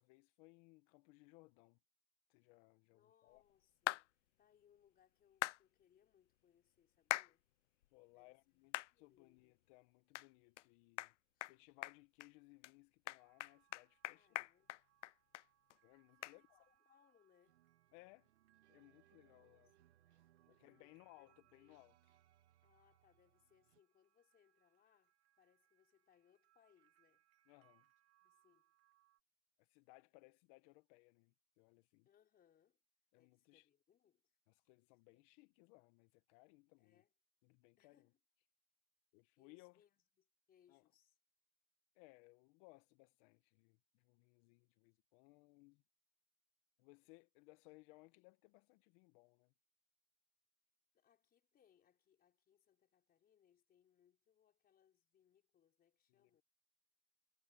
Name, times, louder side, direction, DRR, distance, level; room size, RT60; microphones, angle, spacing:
voice 1, 0.0-1.8 2.3-3.4 7.9-11.2 11.5-14.5 15.8-16.7 17.9-18.3 18.7-19.7 20.1-21.9 27.5-27.9 29.6-32.1 33.1-33.7 34.5-37.0 37.4-38.0 39.1-39.8 40.7-40.8 41.9-45.8 46.8-49.5 56.2-56.4, left 25 dB, 50° left, 1.4 m, -65 dB
voice 2, 2.9-7.4 8.1-9.5 11.3-11.5 14.1-14.8 16.2-17.6 19.1-20.2 20.5-21.8 22.6-27.3 28.2-28.7 32.0-32.8 33.1-34.4 35.1-35.2 36.8-37.1 37.8-38.2 39.4-41.2 50.9-56.4, left 9 dB, 25° left, 4.7 m, -75 dB
sound 1, 3.9-4.0 5.4-5.6 7.1-7.3 7.8-7.9 8.7-8.9 9.4-9.5 10.1-10.3 10.6-10.7 11.0-11.1 11.4-11.5 11.8-12.3 12.6-12.7 13.1-15.4 15.7-15.8 16.2-16.4, left 16 dB, 80° left, 0.5 m, -41 dB
sound 2, 13.2-29.2, right 14 dB, 40° right, 4.4 m, -79 dB
sound 3, 17.4-23.8, right 13 dB, 75° right, 2.0 m, -74 dB
hypercardioid pair, 120°, 35 cm